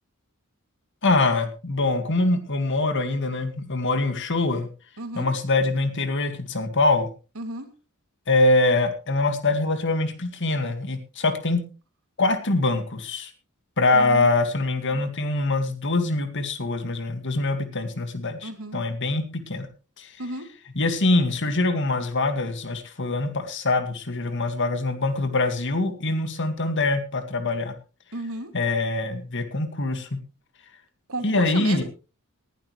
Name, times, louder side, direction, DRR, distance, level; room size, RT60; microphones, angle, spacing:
voice 1, 1.0-4.7 5.1-7.1 8.3-11.6 12.2-13.3 13.8-19.7 20.0-20.1 20.8-27.8 28.5-30.2 31.2-31.8, left 2 dB, 60° left, 8 dB, 2.1 m, -24 dB
voice 2, 5.0-5.3 7.3-7.7 13.9-14.3 18.4-18.8 20.2-20.5 28.1-28.5 31.1-31.8, right 2 dB, 80° right, 7 dB, 2.7 m, -34 dB
19.5 x 12.0 x 3.3 m, 0.34 s
head